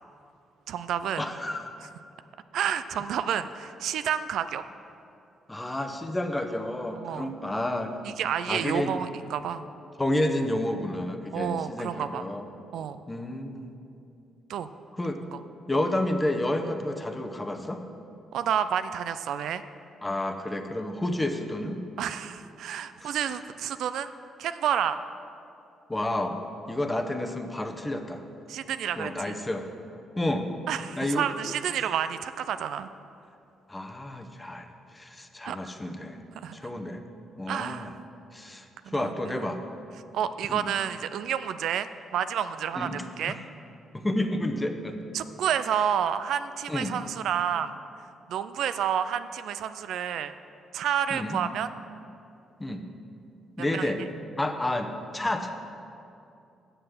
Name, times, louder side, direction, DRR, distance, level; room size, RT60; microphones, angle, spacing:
voice 1, 0.7-1.2 2.5-4.6 6.9-7.3 8.0-9.6 11.3-12.2 12.7-13.0 14.5-14.7 15.3-15.4 18.3-19.6 22.0-24.1 24.4-25.0 28.5-29.3 30.7-32.9 35.4-35.6 36.4-36.6 37.5-37.9 38.9-39.4 40.1-43.4 45.1-47.7 48.3-50.3 50.7-51.7 53.7-53.9, right 9 dB, 75° right, 12 dB, 0.4 m, -30 dB
voice 2, 1.2-1.6 5.5-8.0 8.5-9.0 10.0-12.5 13.1-13.7 15.0-15.2 15.7-17.8 20.0-21.8 23.0-23.2 25.9-26.4 26.7-28.2 29.0-29.7 30.2-30.5 31.0-31.3 33.7-34.7 34.9-36.2 36.5-37.0 37.4-37.9 38.3-39.6 40.5-40.7 42.8-43.4 43.9-45.0 46.7-46.9 51.1-51.4 52.6-52.8 53.6-54.0 54.4-55.5, left 1 dB, 15° left, 6 dB, 0.9 m, -30 dB
7.7 x 6.6 x 7.8 m, 2.6 s
cardioid pair, 90°, 0 cm